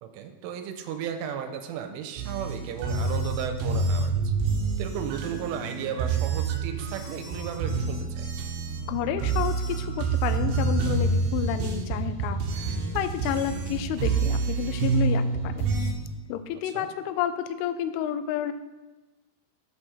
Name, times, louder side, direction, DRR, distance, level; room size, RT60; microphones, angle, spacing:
voice 1, 0.0-4.3 4.8-8.3 16.6-16.9, right 8 dB, 90° right, 7 dB, 3.2 m, -35 dB
sound 1, 2.2-15.9, right 4 dB, 70° right, 2.3 m, -28 dB
voice 2, 8.9-15.7 16.3-18.5, left 10 dB, 85° left, 10 dB, 2.9 m, -30 dB
8.2 x 6.3 x 6.2 m, 1.2 s
omnidirectional pair, 5.7 m